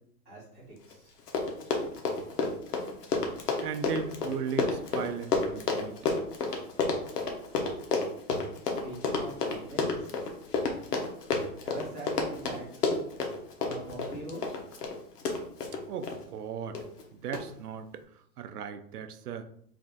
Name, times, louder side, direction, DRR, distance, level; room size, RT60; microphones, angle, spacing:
voice 1, 0.2-1.2 8.8-10.2 11.6-13.0 13.6-14.5, right 1 dB, 10° left, -15 dB, 0.5 m, -43 dB
Run, 0.9-1.0 1.2-16.2 16.8-17.0 17.3-17.4, left 4 dB, 90° left, 1.0 m, -30 dB
voice 2, 3.6-6.1 15.9-16.8 17.2-18.0 18.4-19.4, right 7 dB, 85° right, 9 dB, 0.6 m, -37 dB
3.3 x 2.4 x 3.8 m, 0.66 s
hypercardioid pair, 175°, 46 cm